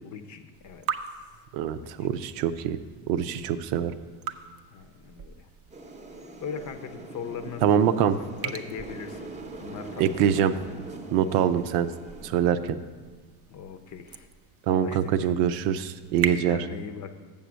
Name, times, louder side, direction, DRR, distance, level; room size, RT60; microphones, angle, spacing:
voice 1, 0.0-0.8 1.7-2.1 4.7-5.5 6.4-8.1 8.4-9.3 9.6-10.5 11.4-11.6 13.5-14.3 14.7-15.3 16.2-17.1, left 7 dB, 40° left, 9 dB, 0.7 m, -40 dB
sound 1, 0.5-16.4, right 7 dB, 30° right, 0.5 m, -41 dB
voice 2, 1.5-2.8 3.1-3.9 7.6-8.2 10.0-10.5 11.1-11.9 12.2-12.8 14.7-16.6, right 9 dB, 75° right, 11 dB, 0.7 m, -24 dB
sound 2, 5.7-12.3, right 2 dB, 15° right, 0.9 m, -42 dB
7.1 x 6.9 x 6.2 m, 1.4 s
supercardioid pair, 105°, 47 cm